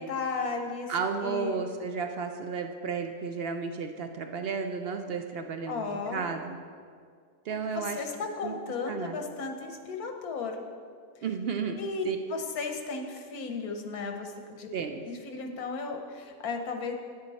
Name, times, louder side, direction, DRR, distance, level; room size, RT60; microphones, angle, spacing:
voice 1, 0.0-0.9 1.2-1.6 5.7-6.3 7.7-10.6 11.7-14.7 15.1-16.9, left 4 dB, 85° left, 4 dB, 1.4 m, -35 dB
voice 2, 0.9-6.6 7.4-8.1 8.4-8.5 8.9-9.2 11.2-11.8 12.0-12.2 14.7-15.0, right 5 dB, 65° right, 6 dB, 0.6 m, -33 dB
9.8 x 8.8 x 4.1 m, 2.1 s
omnidirectional pair, 1.5 m